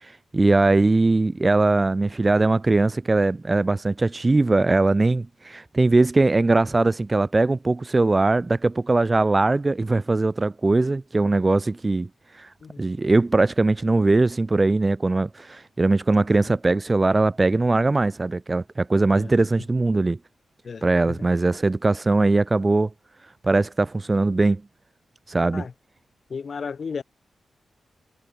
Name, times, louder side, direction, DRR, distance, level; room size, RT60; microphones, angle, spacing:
voice 1, 0.0-12.1 12.3-12.5 12.8-20.2 20.8-22.9 23.4-24.6 25.3-25.6, right 2 dB, 35° right, 0.8 m, -20 dB
voice 2, 12.6-12.9 16.3-16.5 19.1-19.3 20.6-21.2 25.5-25.7 26.3-27.0, left 5 dB, 60° left, 0.8 m, -34 dB
supercardioid pair, 45°, 0 cm